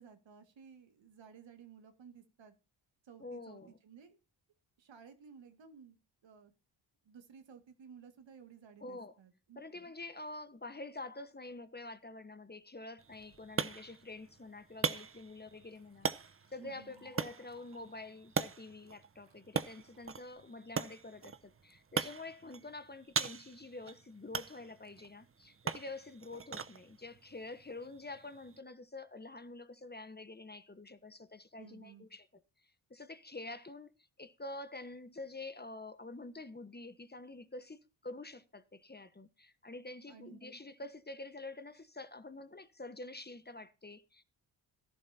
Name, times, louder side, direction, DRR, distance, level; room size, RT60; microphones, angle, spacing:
voice 1, 0.0-2.5 3.0-4.2 4.8-6.0 6.2-6.5 7.0-9.6 16.6-17.0 31.6-32.1 40.1-40.4, right 6 dB, 65° right, 2.1 m, -56 dB
voice 2, 3.2-3.8 8.8-9.1 9.5-16.1 16.5-32.3 32.9-33.9 34.2-44.2, left 2 dB, 20° left, 1.3 m, -47 dB
sound 1, 13.0-28.6, right 5 dB, 25° right, 0.9 m, -41 dB
Liquid, 15.7-19.4 19.9-20.4, right 2 dB, 90° right, 6.6 m, -67 dB
17.5 x 11.0 x 2.8 m
supercardioid pair, 45°, 48 cm